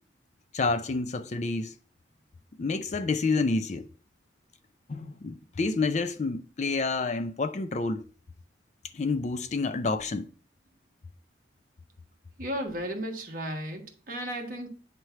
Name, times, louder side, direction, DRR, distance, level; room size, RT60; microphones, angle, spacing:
voice 1, 0.5-1.8 2.6-3.9 4.9-8.0 8.9-10.3, left 3 dB, 40° left, 0.4 m, -29 dB
voice 2, 12.4-14.7, equal, 45° right, 1.3 m, -34 dB
9.1 x 3.2 x 5.6 m
head